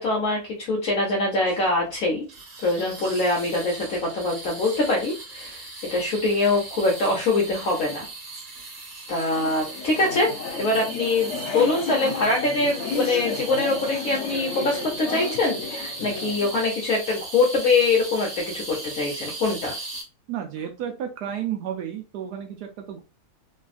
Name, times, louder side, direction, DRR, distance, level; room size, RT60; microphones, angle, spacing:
voice 1, 0.0-2.3 2.6-5.6 5.9-8.0 9.1-19.8, left 2 dB, 60° left, -3 dB, 1.1 m, -24 dB
sound 1, 1.5-1.9 2.3-20.0, right 3 dB, 60° right, 1.5 m, -38 dB
sound 2, 9.1-16.6, left 4 dB, 90° left, 0.6 m, -33 dB
voice 2, 20.3-23.0, right 9 dB, 75° right, 4 dB, 1.1 m, -32 dB
3.3 x 2.2 x 2.4 m, 0.29 s
omnidirectional pair, 1.8 m